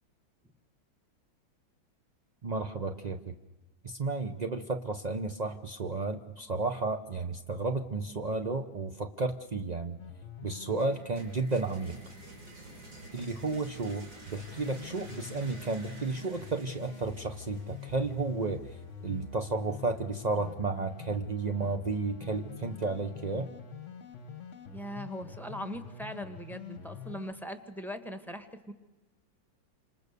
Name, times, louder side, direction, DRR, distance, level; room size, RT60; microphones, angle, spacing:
voice 1, 2.4-3.3 3.8-10.0 10.4-12.0 13.1-18.8 19.0-23.5, right 3 dB, 45° right, 6 dB, 0.5 m, -32 dB
sound 1, 10.0-12.1 14.4-27.3, left 7 dB, 40° left, 1.4 m, -46 dB
sound 2, 10.8-18.6, right 1 dB, 75° right, 5.2 m, -50 dB
voice 2, 24.7-28.7, equal, ahead, 8 dB, 1.7 m, -40 dB
28.0 x 27.0 x 6.8 m, 1.2 s
omnidirectional pair, 2.1 m